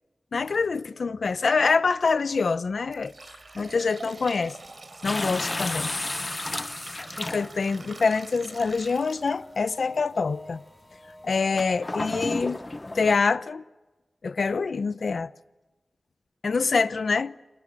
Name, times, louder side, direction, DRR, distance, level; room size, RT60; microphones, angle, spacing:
voice 1, 0.3-3.1 3.5-4.6 5.0-5.9 7.0-10.6 11.2-12.6 12.9-13.6 14.2-15.3 16.4-17.4, left 4 dB, 80° left, 0.8 m, -25 dB
sound 1, 2.0-2.2 2.6-9.8 10.2-10.3 11.2-11.3 11.8-11.9 12.3-12.6, right 2 dB, 50° right, 4.2 m, -44 dB
sound 2, 5.0-7.8 8.7-8.8 11.6-13.2, left 2 dB, 30° left, 0.9 m, -32 dB
sound 3, 8.3-13.1, left 1 dB, 5° left, 4.2 m, -50 dB
30.0 x 26.5 x 7.5 m
wide cardioid pair, 90°, 0 cm